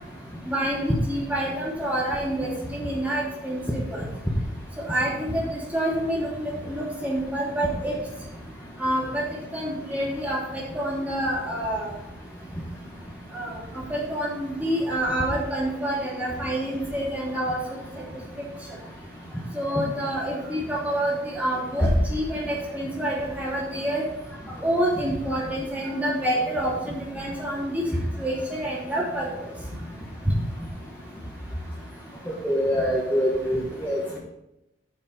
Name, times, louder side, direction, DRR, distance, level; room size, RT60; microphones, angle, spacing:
voice 1, 0.5-4.0 4.9-7.9 8.8-9.2 9.5-11.9 13.3-17.6 19.5-24.0 24.6-27.8 28.2-29.3, right 1 dB, 10° right, -6 dB, 2.9 m, -27 dB
voice 2, 32.4-34.2, equal, 10° left, -5 dB, 1.2 m, -24 dB
8.6 x 5.3 x 5.6 m, 0.88 s
head